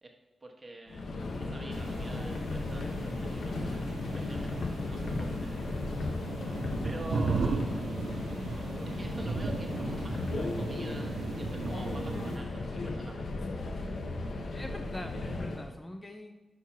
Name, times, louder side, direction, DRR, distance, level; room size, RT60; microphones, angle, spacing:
voice 1, 0.4-1.1 1.4-3.9 4.1-5.9 6.8-7.7 8.8-13.6, right 2 dB, 30° right, 1 dB, 1.2 m, -47 dB
Subway metro underground, 0.9-15.7, left 2 dB, 80° left, 0.8 m, -35 dB
sound 1, 1.7-12.4, right 4 dB, 85° right, 0.6 m, -37 dB
voice 2, 13.6-14.1 14.5-16.3, left 1 dB, 20° left, 5 dB, 0.4 m, -43 dB
5.9 x 4.7 x 5.7 m, 1.2 s
wide cardioid pair, 105°, 0 cm